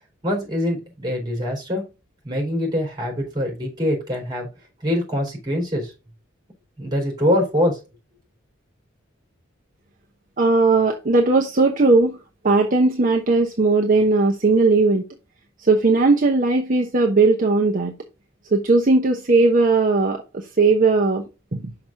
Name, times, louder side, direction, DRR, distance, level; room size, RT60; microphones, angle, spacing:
voice 1, 0.2-1.9 2.2-4.5 4.8-5.9 6.8-7.8, left 1 dB, 20° right, 3.9 m, -24 dB
voice 2, 10.4-12.2 12.4-15.0 15.6-17.9 18.5-21.2 21.5-21.7, right 3 dB, 40° right, 0.9 m, -18 dB
6.1 x 5.9 x 3.7 m
head